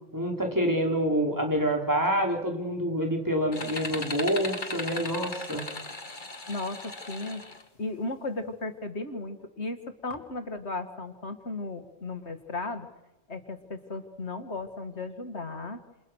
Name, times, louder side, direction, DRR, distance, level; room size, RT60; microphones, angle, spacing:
voice 1, 0.1-5.6, equal, 15° right, 1 dB, 4.9 m, -27 dB
sound 1, 3.5-7.6, left 2 dB, 45° left, 2.4 m, -37 dB
voice 2, 6.5-7.5 7.8-12.9 13.3-15.8, left 2 dB, 85° left, 8 dB, 2.6 m, -35 dB
30.0 x 28.5 x 6.5 m, 1.0 s
omnidirectional pair, 1.1 m